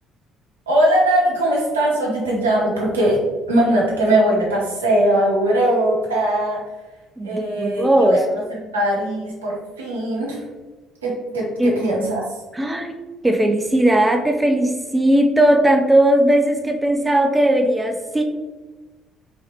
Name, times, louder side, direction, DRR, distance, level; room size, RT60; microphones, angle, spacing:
voice 1, 0.7-3.2 3.5-6.6 7.2-10.4 11.0-12.2, right 1 dB, 80° right, -3 dB, 0.8 m, -20 dB
voice 2, 7.2-8.2 11.6-11.8 12.5-12.9 13.2-18.2, right 1 dB, 15° right, 4 dB, 0.4 m, -17 dB
3.4 x 3.2 x 2.9 m, 1.2 s
figure-of-eight pair, 50°, 0 cm